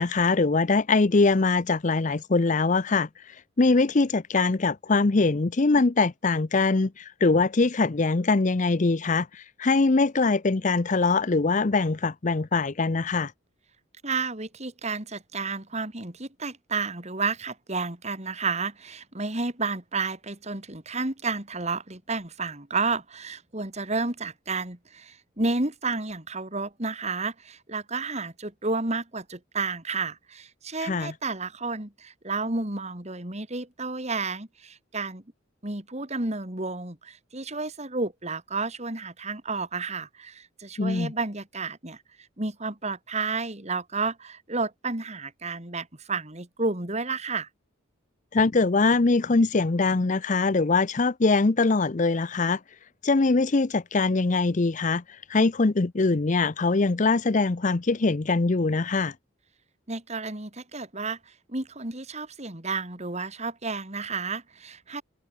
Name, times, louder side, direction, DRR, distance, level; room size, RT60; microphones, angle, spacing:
voice 1, 0.0-13.3 30.8-31.1 40.8-41.1 48.3-52.6 53.0-59.1, left 3 dB, 40° left, 0.6 m, -23 dB
voice 2, 14.0-35.2 35.6-42.0 42.4-47.5 59.9-61.2 61.5-65.0, right 3 dB, 35° right, 2.7 m, -31 dB
head